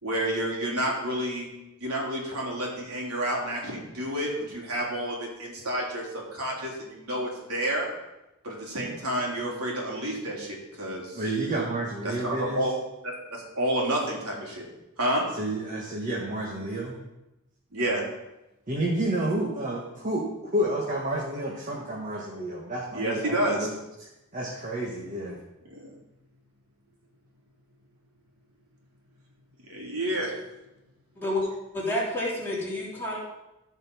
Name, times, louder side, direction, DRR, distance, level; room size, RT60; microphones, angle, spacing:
voice 1, 0.0-1.5 1.8-7.9 8.4-11.2 12.0-12.7 13.0-14.7 15.0-15.2 17.7-18.0 22.9-23.7 25.8-25.9 29.7-30.3, right 1 dB, 90° right, -3 dB, 3.6 m, -29 dB
voice 2, 11.1-12.6 15.3-17.0 18.7-23.8 24.3-25.4, right 1 dB, 35° right, -3 dB, 1.6 m, -30 dB
voice 3, 31.7-33.2, left 1 dB, 10° left, -6 dB, 3.2 m, -29 dB
14.5 x 5.5 x 5.5 m, 0.96 s
head